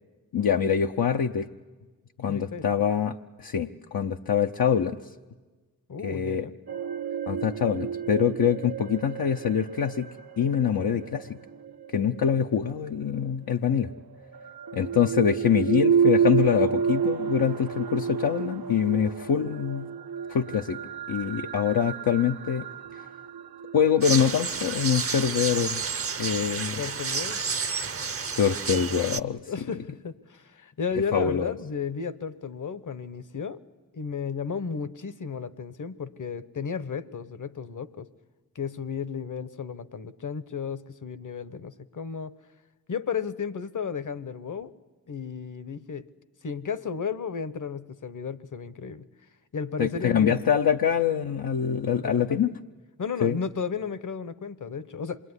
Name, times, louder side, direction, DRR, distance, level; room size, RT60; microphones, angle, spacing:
voice 1, 0.3-1.5 2.2-5.0 6.0-6.5 7.3-10.1 10.4-11.4 11.9-13.9 14.7-19.9 20.3-20.8 21.1-22.7 23.7-25.8 26.2-26.8 28.4-29.4 31.1-31.5 49.8-52.5 53.2-53.4, left 8 dB, 75° left, 3 dB, 0.8 m, -24 dB
voice 2, 2.3-2.7 5.9-6.6 26.8-27.4 29.5-33.6 33.9-38.1 38.5-42.4 42.9-44.7 45.1-46.0 46.4-49.0 49.5-50.4 52.0-52.4 53.0-55.3, left 6 dB, 55° left, 14 dB, 1.1 m, -33 dB
sound 1, 6.7-12.7 13.9-26.3, right 7 dB, 80° right, 0.8 m, -30 dB
sound 2, 24.0-29.2, right 5 dB, 40° right, 0.7 m, -30 dB
26.5 x 21.5 x 9.7 m, 1.3 s
cardioid pair, 50°, 37 cm